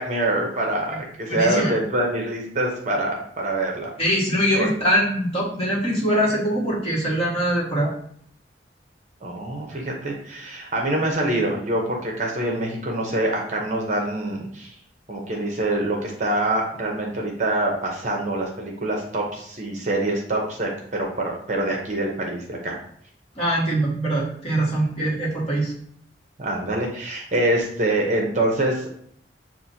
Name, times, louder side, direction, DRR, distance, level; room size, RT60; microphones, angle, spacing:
voice 1, 0.0-3.9 4.5-4.7 9.2-14.7 15.1-22.7 26.4-28.9, right 1 dB, 40° right, 0 dB, 0.7 m, -25 dB
voice 2, 1.3-1.7 4.0-7.9 23.3-25.7, equal, 30° left, -6 dB, 1.4 m, -22 dB
7.2 x 2.5 x 2.7 m, 0.64 s
head